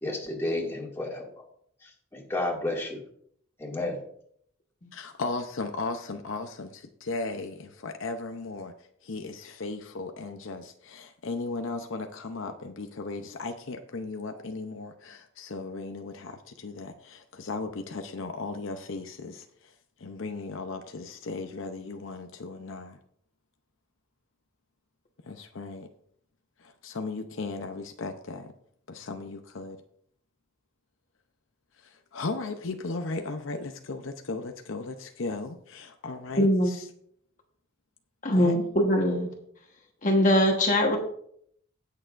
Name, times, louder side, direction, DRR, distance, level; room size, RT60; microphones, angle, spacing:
voice 1, 0.0-1.4 1.8-3.0 3.6-4.0, left 2 dB, 10° left, 2.1 m, -32 dB
voice 2, 4.9-8.7 9.0-19.7 20.0-23.0 25.3-25.9 26.6-28.5 28.9-29.8 31.8-36.9 38.4-38.6, left 3 dB, 70° left, 0.7 m, -36 dB
voice 3, 36.4-36.7 38.2-39.3 40.0-41.0, left 1 dB, 35° left, 1.2 m, -22 dB
17.0 x 6.7 x 2.5 m
head